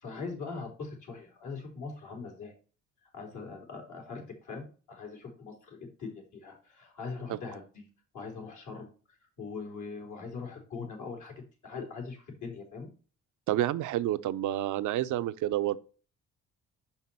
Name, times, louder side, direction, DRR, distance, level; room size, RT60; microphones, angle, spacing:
voice 1, 0.0-2.5 3.1-7.8 8.1-8.9 9.4-11.3 11.6-12.9, left 4 dB, 75° left, 3.4 m, -41 dB
voice 2, 13.5-15.8, right 13 dB, 75° right, 0.6 m, -29 dB
5.7 x 5.5 x 4.3 m
cardioid pair, 90°, 30 cm